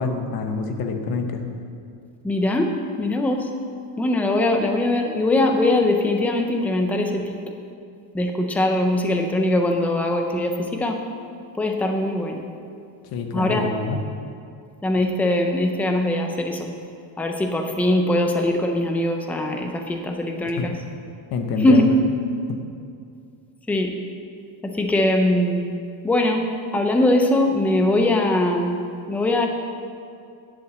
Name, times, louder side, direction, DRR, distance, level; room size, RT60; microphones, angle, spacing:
voice 1, 0.0-1.4 13.1-14.0 20.6-20.7 21.3-21.9 22.5-22.6, left 4 dB, 50° left, 5 dB, 1.1 m, -26 dB
voice 2, 2.2-3.5 4.0-7.4 8.1-11.0 11.6-12.4 13.3-13.7 14.8-16.7 17.2-20.7 21.6-21.9 23.7-23.9 24.6-25.6 26.0-26.4 26.7-28.8 29.1-29.5, left 1 dB, 5° left, 3 dB, 0.5 m, -21 dB
10.5 x 7.5 x 7.3 m, 2.4 s
cardioid pair, 175°, 49 cm